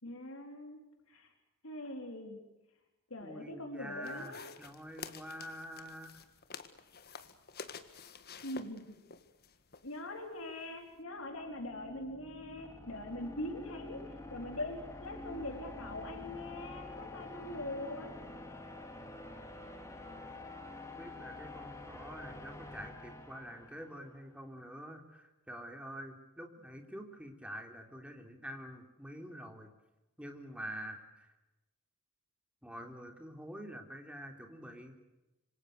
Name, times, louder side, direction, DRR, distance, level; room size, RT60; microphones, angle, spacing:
voice 1, 0.0-0.8 1.1-1.3 1.6-2.4 3.1-4.4 8.4-9.0 9.8-14.0 14.3-18.1, left 1 dB, 80° left, 4 dB, 4.1 m, -42 dB
voice 2, 3.2-6.1 21.0-29.7 30.2-31.3 32.6-35.0, equal, 5° right, 3 dB, 3.6 m, -46 dB
sound 1, 4.0-11.0, left 6 dB, 50° left, 1.7 m, -50 dB
sound 2, 11.0-24.1, left 2 dB, 15° left, 3.1 m, -48 dB
26.5 x 26.0 x 6.8 m, 1.0 s
head